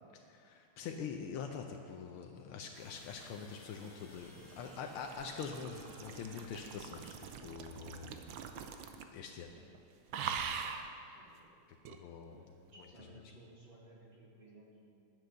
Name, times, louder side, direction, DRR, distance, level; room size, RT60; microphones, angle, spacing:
voice 1, 0.1-8.2 9.1-9.5 11.9-12.5, left 6 dB, 85° left, 3 dB, 1.5 m, -44 dB
sound 1, 2.7-7.1, left 1 dB, 10° left, 1.5 m, -58 dB
sound 2, 3.5-9.2 9.5-9.8 10.1-10.9 11.8-12.0, right 7 dB, 70° right, 1.3 m, -43 dB
voice 2, 10.2-11.6 12.3-15.0, right 1 dB, 25° right, -5 dB, 2.2 m, -59 dB
11.0 x 7.8 x 6.5 m, 2.5 s
omnidirectional pair, 2.4 m